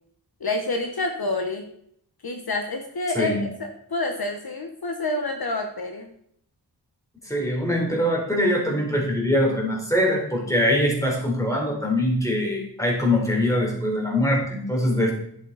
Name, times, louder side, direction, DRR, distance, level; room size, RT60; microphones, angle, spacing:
voice 1, 0.4-1.6 2.2-6.1, left 2 dB, 60° left, 4 dB, 1.2 m, -28 dB
voice 2, 7.3-15.1, left 1 dB, 5° left, -1 dB, 3.7 m, -23 dB
11.0 x 8.4 x 4.1 m, 0.69 s
wide cardioid pair, 75°, 43 cm